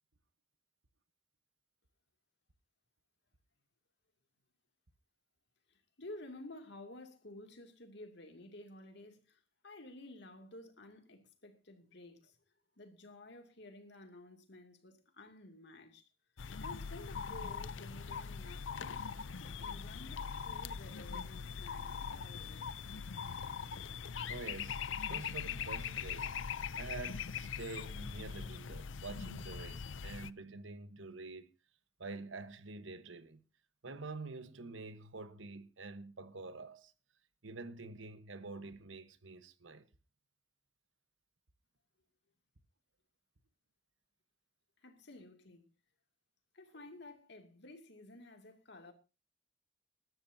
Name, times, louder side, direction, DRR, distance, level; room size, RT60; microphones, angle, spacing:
voice 1, 5.7-12.4 12.8-16.1 16.6-19.1 19.4-22.8 44.8-45.7 46.5-48.9, left 2 dB, 60° left, 2.6 m, -53 dB
sound 1, 16.4-30.3, left 6 dB, 80° left, 0.6 m, -41 dB
voice 2, 24.3-26.3 26.8-31.5 32.0-33.4 33.8-36.9 37.4-39.9, right 3 dB, 80° right, 1.2 m, -47 dB
21.5 x 12.5 x 2.8 m
head